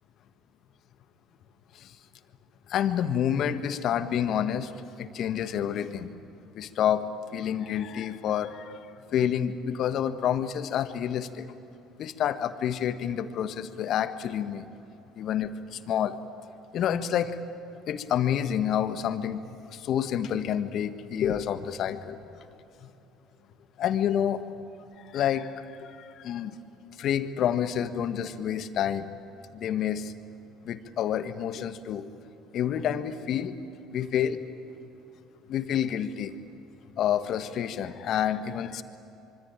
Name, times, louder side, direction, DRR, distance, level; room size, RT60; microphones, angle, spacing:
voice 1, 2.7-4.7 5.0-6.1 6.5-7.1 7.3-8.8 9.1-11.5 12.0-14.6 15.2-16.1 16.7-17.4 17.9-22.2 23.8-24.4 25.1-25.5 25.8-26.6 27.0-29.1 29.5-30.1 30.6-32.1 32.5-33.6 33.9-34.4 35.5-36.3 37.0-38.8, left 9 dB, 55° left, 10 dB, 1.6 m, -28 dB
25.5 x 24.5 x 8.9 m, 3.0 s
hypercardioid pair, 60°, 0 cm